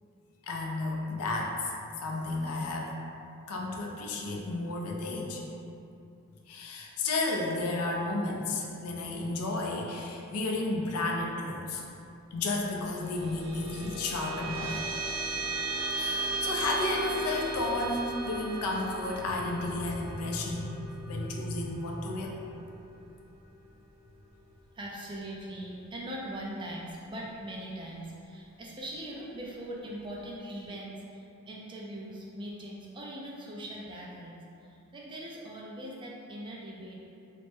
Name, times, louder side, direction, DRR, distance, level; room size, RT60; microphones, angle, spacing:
voice 1, 0.4-1.7 2.0-3.0 3.5-5.4 6.5-11.8 12.3-14.8 16.0-22.4, left 2 dB, 80° left, 0 dB, 0.4 m, -32 dB
sound 1, 12.8-23.5, right 2 dB, 65° right, 0.7 m, -36 dB
voice 2, 24.7-37.0, right 1 dB, 20° right, -4 dB, 0.3 m, -41 dB
3.2 x 2.0 x 3.1 m, 2.6 s
head